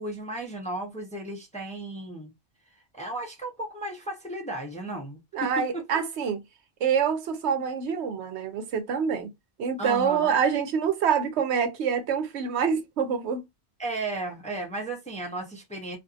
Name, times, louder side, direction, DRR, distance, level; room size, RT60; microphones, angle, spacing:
voice 1, 0.0-2.3 2.9-5.8 9.8-10.3 13.8-16.0, right 2 dB, 10° left, 0.6 m, -34 dB
voice 2, 5.3-6.4 6.8-9.3 9.6-13.4, right 7 dB, 80° right, 0.9 m, -26 dB
2.6 x 2.4 x 2.4 m
omnidirectional pair, 1.1 m